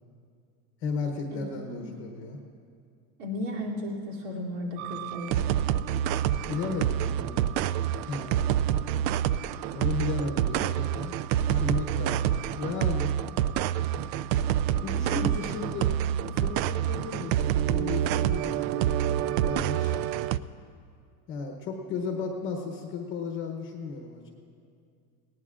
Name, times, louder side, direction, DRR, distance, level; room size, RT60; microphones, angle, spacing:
voice 1, 0.8-2.4 6.5-7.5 8.1-8.5 9.7-11.2 11.5-13.1 14.3-14.4 14.8-15.9 16.3-20.0 21.3-24.3, left 4 dB, 25° left, 3 dB, 0.8 m, -35 dB
voice 2, 3.2-5.4 15.1-15.3, left 1 dB, 55° right, -3 dB, 2.9 m, -34 dB
sound 1, 4.8-20.4, right 11 dB, 90° right, 0.6 m, -27 dB
19.5 x 18.0 x 2.4 m, 2.4 s
supercardioid pair, 165°, 50 cm